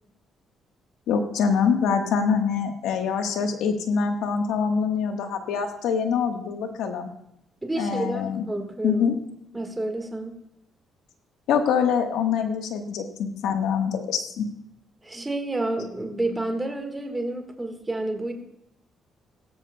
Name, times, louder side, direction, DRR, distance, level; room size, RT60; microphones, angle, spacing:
voice 1, 1.1-7.1 7.8-8.4 8.8-9.1 11.5-14.4, left 6 dB, 90° left, 5 dB, 1.3 m, -24 dB
voice 2, 7.6-9.1 9.5-10.3 15.0-18.3, right 2 dB, 15° right, 4 dB, 1.5 m, -29 dB
16.5 x 14.0 x 2.2 m, 0.78 s
cardioid pair, 90°, 0 cm